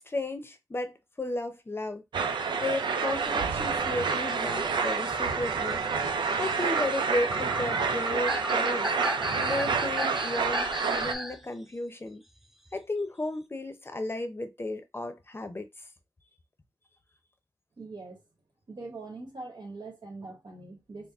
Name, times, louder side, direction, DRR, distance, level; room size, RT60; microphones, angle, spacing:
voice 1, 0.0-2.0 2.6-8.9 9.4-12.2 12.7-15.7, left 2 dB, 30° left, 0.7 m, -34 dB
sound 1, 2.1-11.1, right 5 dB, 90° right, 0.5 m, -28 dB
sound 2, 5.1-11.4 12.7-12.8, equal, 5° right, 0.5 m, -36 dB
voice 2, 17.8-18.2 18.7-21.1, right 3 dB, 75° right, 1.5 m, -42 dB
4.0 x 2.1 x 3.5 m
wide cardioid pair, 90°, 8 cm